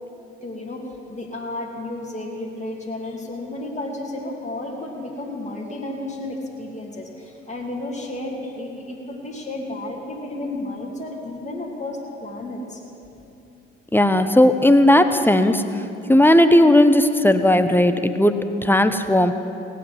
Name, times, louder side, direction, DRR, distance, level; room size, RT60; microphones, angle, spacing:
voice 1, 0.4-12.8, left 2 dB, 20° left, -2 dB, 2.6 m, -32 dB
voice 2, 13.9-15.6 16.1-19.3, left 1 dB, 5° left, 9 dB, 0.9 m, -16 dB
17.0 x 8.5 x 7.8 m, 2.8 s
hypercardioid pair, 50°, 32 cm